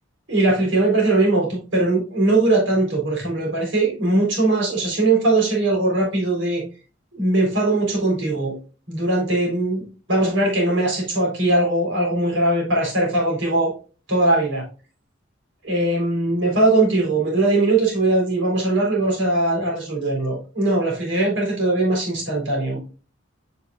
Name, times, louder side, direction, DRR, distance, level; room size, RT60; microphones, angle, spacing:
voice 1, 0.3-6.6 7.1-8.6 8.9-9.8 10.1-13.7 14.1-14.6 15.6-22.8, right 2 dB, 65° right, -2 dB, 3.9 m, -20 dB
8.2 x 6.3 x 2.4 m, 0.35 s
head